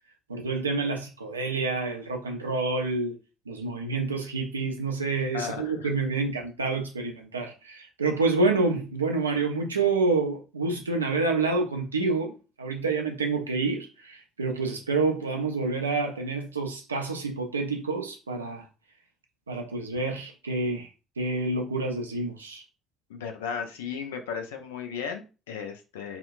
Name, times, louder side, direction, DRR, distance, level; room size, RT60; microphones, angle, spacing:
voice 1, 0.3-3.1 3.5-18.7 19.5-20.9 21.2-22.6, right 3 dB, 90° right, 0.4 m, -28 dB
voice 2, 5.3-5.9 23.1-26.2, left 6 dB, 80° left, 0.4 m, -35 dB
2.7 x 2.2 x 2.4 m
figure-of-eight pair, 50°, 0 cm